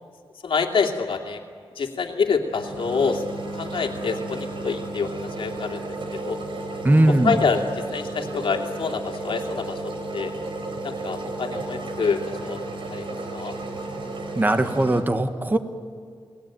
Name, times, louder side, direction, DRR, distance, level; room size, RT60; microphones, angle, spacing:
voice 1, 0.4-1.4 1.7-3.2 3.5-5.9 6.2-6.4 7.1-10.3 10.8-12.6 12.9-13.5, left 5 dB, 75° left, 3 dB, 2.7 m, -26 dB
sound 1, 2.5-15.0, right 2 dB, 70° right, 3.9 m, -33 dB
voice 2, 6.8-7.4 14.3-15.6, right 1 dB, 20° right, 8 dB, 1.6 m, -19 dB
30.0 x 19.0 x 9.2 m, 2.2 s
wide cardioid pair, 130°, 9 cm